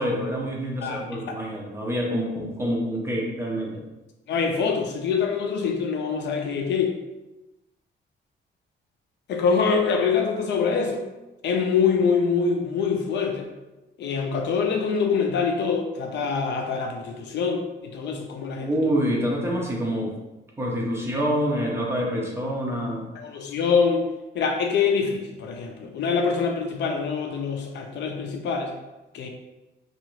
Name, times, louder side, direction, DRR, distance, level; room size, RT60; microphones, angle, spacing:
voice 1, 0.0-3.8 18.6-20.1 20.6-23.1, equal, 10° right, -3 dB, 0.4 m, -26 dB
voice 2, 0.8-1.3 4.3-6.9 9.3-11.0 11.4-13.5 14.0-18.7 23.2-24.0 24.3-28.7 29.1-29.3, left 5 dB, 65° left, 3 dB, 0.4 m, -24 dB
2.7 x 2.4 x 3.0 m, 1.0 s
wide cardioid pair, 180°, 20 cm